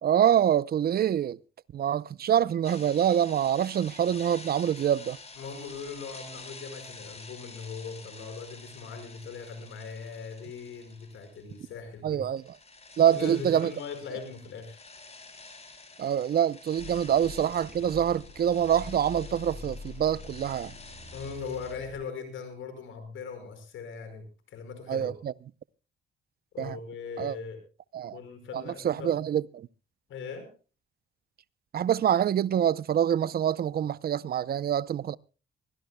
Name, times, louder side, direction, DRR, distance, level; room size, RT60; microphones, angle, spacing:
voice 1, 0.0-1.4 1.7-5.2 12.0-12.6 13.0-13.7 16.0-20.7 24.9-25.3 26.6-26.8 27.2-27.4 27.9-28.2 28.5-29.7 31.7-35.2, right 10 dB, 50° right, 0.6 m, -25 dB
sound 1, 2.6-11.8 12.0-21.7, left 3 dB, 30° left, 5.3 m, -49 dB
voice 2, 5.4-12.2 13.1-14.9 21.1-25.1 26.5-27.6 28.1-29.1 30.1-30.5, left 5 dB, 75° left, 5.3 m, -40 dB
sound 2, 16.8-22.0, left 4 dB, 55° left, 7.9 m, -45 dB
24.0 x 16.0 x 2.2 m
cardioid pair, 90°, 20 cm